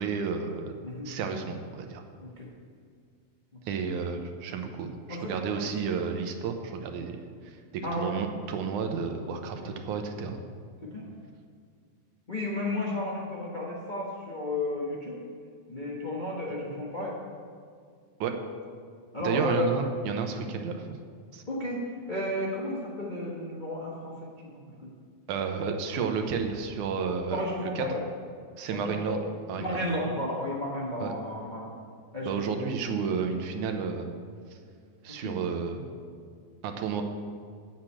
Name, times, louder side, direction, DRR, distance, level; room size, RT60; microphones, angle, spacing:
voice 1, 0.0-0.7 1.1-2.0 3.7-10.4 18.2-18.3 19.2-20.9 21.3-21.4 25.3-27.9 28.6-29.2 29.5-29.8 31.0-31.1 32.3-34.1 34.5-34.6 35.0-35.9 36.6-37.0, right 6 dB, 80° right, 5 dB, 2.4 m, -31 dB
voice 2, 12.3-15.2 15.7-17.2 19.1-19.7 21.5-24.9 27.3-28.0 28.7-29.2 29.6-31.7 32.1-32.7 35.1-35.3, left 1 dB, 85° left, -4 dB, 0.4 m, -33 dB
8.1 x 7.6 x 8.7 m, 2.2 s
omnidirectional pair, 3.5 m